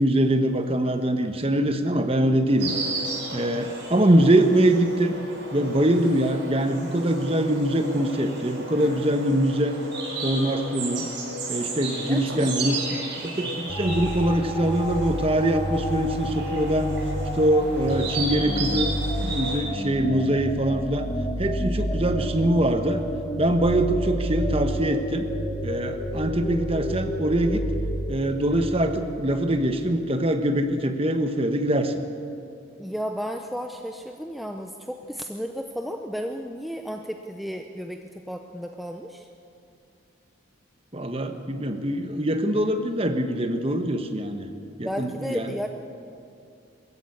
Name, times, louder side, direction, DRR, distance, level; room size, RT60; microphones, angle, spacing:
voice 1, 0.0-2.7 3.3-5.1 5.5-9.8 10.2-11.1 11.5-12.8 13.2-16.9 17.3-18.9 19.2-21.1 21.4-23.0 23.4-25.2 25.6-27.7 28.1-31.9 40.9-44.5 44.8-45.5, right 1 dB, 30° right, 6 dB, 1.2 m, -23 dB
Insect, 2.6-19.6, right 2 dB, 55° right, 5.1 m, -34 dB
voice 2, 12.1-12.5 32.8-39.3 44.8-45.7, equal, ahead, 4 dB, 0.6 m, -33 dB
sound 1, 13.7-30.0, equal, 20° left, 1.1 m, -30 dB
22.0 x 14.5 x 8.6 m, 2.5 s
head